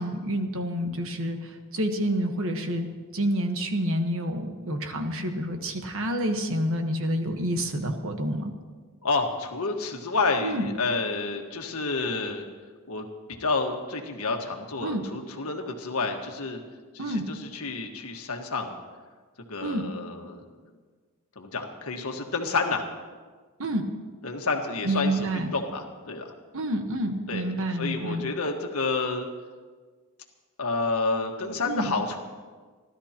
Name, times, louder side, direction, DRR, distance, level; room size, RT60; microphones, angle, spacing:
voice 1, 0.0-2.9 3.1-8.5 10.4-10.7 14.8-15.0 17.0-17.2 19.6-19.9 23.6-23.9 24.8-25.5 26.5-28.3 31.7-31.9, equal, 65° right, 5 dB, 1.3 m, -28 dB
voice 2, 9.0-12.4 12.9-13.0 13.3-16.6 16.9-18.7 19.5-20.4 21.3-22.8 24.2-26.3 27.3-27.5 27.8-29.3 30.6-32.2, left 3 dB, 70° left, 3 dB, 1.6 m, -29 dB
29.0 x 12.5 x 3.0 m, 1.5 s
head